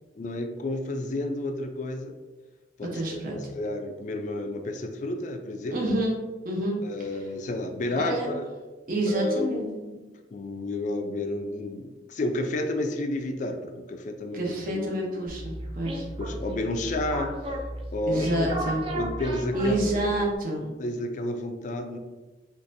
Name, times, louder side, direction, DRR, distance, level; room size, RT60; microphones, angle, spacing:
voice 1, 0.2-2.1 2.8-5.8 6.8-8.5 9.1-10.0 10.3-14.4 14.7-15.3 16.2-17.6 17.9-18.5 18.9-20.0 20.6-22.0, left 1 dB, 45° left, 5 dB, 0.4 m, -31 dB
voice 2, 2.8-3.4 5.7-6.2 6.4-7.3 8.0-8.3 8.9-9.6 14.3-16.1 18.0-18.8 19.5-20.7, right 1 dB, 50° right, -1 dB, 0.7 m, -28 dB
sound 1, 15.3-20.4, right 1 dB, 30° right, 0.4 m, -35 dB
3.9 x 2.5 x 2.6 m, 1.2 s
head